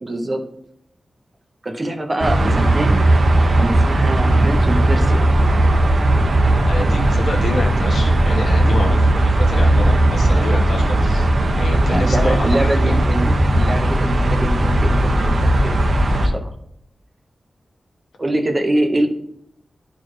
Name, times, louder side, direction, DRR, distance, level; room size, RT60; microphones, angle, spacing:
voice 1, 0.0-0.4 1.6-3.1 3.5-5.3 11.8-16.5 18.2-19.1, right 1 dB, 30° right, 5 dB, 0.6 m, -24 dB
sound 1, 2.2-16.3, right 1 dB, 60° right, 0.8 m, -16 dB
voice 2, 6.7-11.3 11.6-13.0, left 2 dB, 85° left, 2 dB, 1.1 m, -27 dB
11.0 x 4.6 x 3.0 m, 0.75 s
wide cardioid pair, 135°, 0 cm